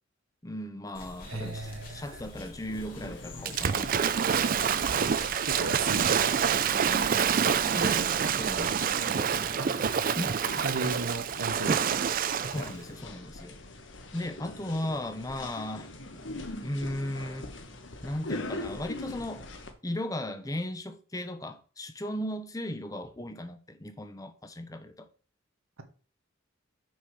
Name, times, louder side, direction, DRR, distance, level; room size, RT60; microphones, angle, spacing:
voice 1, 0.4-4.2 6.8-9.7 10.2-10.6 11.7-11.9 12.5-13.6 14.1-15.9 16.6-17.5 18.0-19.5 19.8-25.1, left 1 dB, 15° left, 0.7 m, -37 dB
sound 1, 0.9-8.9, left 1 dB, 45° left, 2.6 m, -46 dB
voice 2, 1.2-2.2 5.0-5.1 5.4-6.3 9.6-9.7 10.6-11.8, right 3 dB, 90° right, 1.5 m, -35 dB
sound 2, 2.7-19.7, left 1 dB, 60° left, 1.3 m, -42 dB
Waves surf / Splash splatter, 3.5-12.7, right 7 dB, 45° right, 0.4 m, -27 dB
6.3 x 4.9 x 6.1 m
head